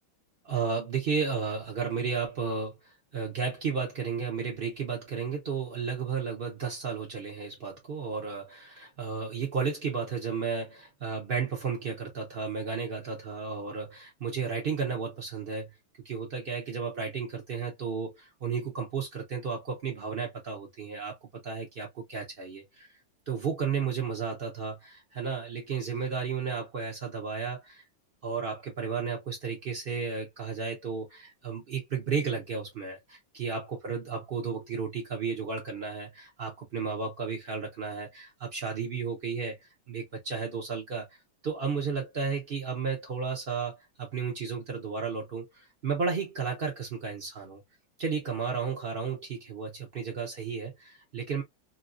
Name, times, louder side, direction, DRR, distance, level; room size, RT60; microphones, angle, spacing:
voice 1, 0.4-15.7 16.0-21.2 21.4-22.9 23.3-27.8 28.2-41.2 41.4-47.6 48.0-51.4, right 5 dB, 55° right, 0.6 m, -33 dB
3.1 x 2.7 x 2.4 m
omnidirectional pair, 2.1 m